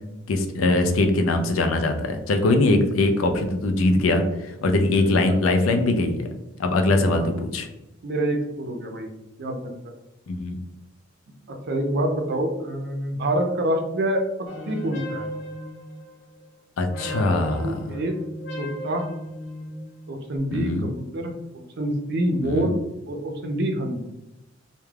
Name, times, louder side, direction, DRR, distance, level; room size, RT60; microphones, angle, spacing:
voice 1, 0.3-6.3 6.6-7.7 10.3-10.6 16.8-17.8 20.5-20.9 22.4-22.7, left 2 dB, 80° left, 5 dB, 0.4 m, -22 dB
voice 2, 4.8-5.4 7.1-7.3 8.0-9.1 9.4-9.7 11.5-14.3 14.7-15.3 17.3-18.1 18.6-19.1 20.1-21.3 21.8-22.7 23.1-24.0, right 1 dB, 55° right, 4 dB, 0.4 m, -27 dB
sound 1, 14.5-16.4 16.8-20.4, left 1 dB, 55° left, 0.8 m, -35 dB
2.3 x 2.1 x 3.2 m, 0.93 s
head